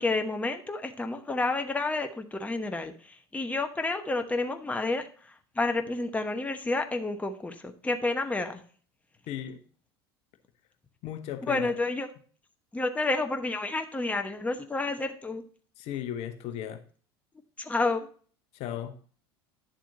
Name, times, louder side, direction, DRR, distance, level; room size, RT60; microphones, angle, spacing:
voice 1, 0.0-2.9 3.3-5.1 5.6-8.6 11.4-12.1 12.7-15.4 17.6-18.1, left 3 dB, 10° left, 6 dB, 1.1 m, -30 dB
voice 2, 9.3-9.6 11.0-11.7 15.8-16.8 18.5-18.9, left 10 dB, 50° left, 8 dB, 1.0 m, -36 dB
10.0 x 7.4 x 2.7 m, 0.43 s
figure-of-eight pair, 75°, 13 cm